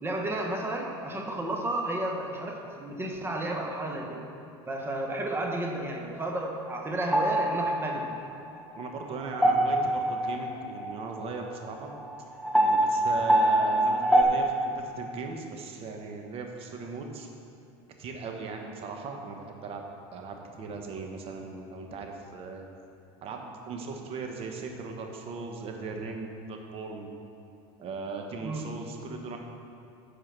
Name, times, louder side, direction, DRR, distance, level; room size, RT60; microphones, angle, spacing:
voice 1, 0.0-4.2 4.7-8.1 28.4-28.7, right 1 dB, 15° right, 1 dB, 1.1 m, -32 dB
sound 1, 7.0-14.2, right 1 dB, ahead, 0.7 m, -25 dB
voice 2, 8.7-11.9 12.6-17.3 18.0-19.8 20.1-22.7 23.2-27.1 27.8-29.4, right 4 dB, 40° right, 3 dB, 1.2 m, -38 dB
9.1 x 5.0 x 5.9 m, 2.6 s
supercardioid pair, 110°, 14 cm